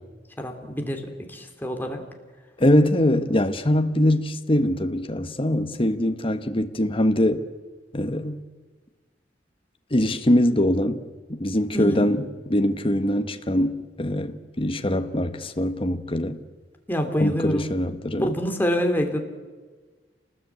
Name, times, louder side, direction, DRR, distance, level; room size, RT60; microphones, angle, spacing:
voice 1, 0.4-2.0 11.7-12.1 16.9-19.2, equal, 10° left, 2.9 m, -27 dB
voice 2, 2.6-7.5 7.9-8.4 9.9-16.4 17.2-18.3, left 1 dB, 30° left, 1.4 m, -23 dB
28.5 x 19.5 x 8.4 m
head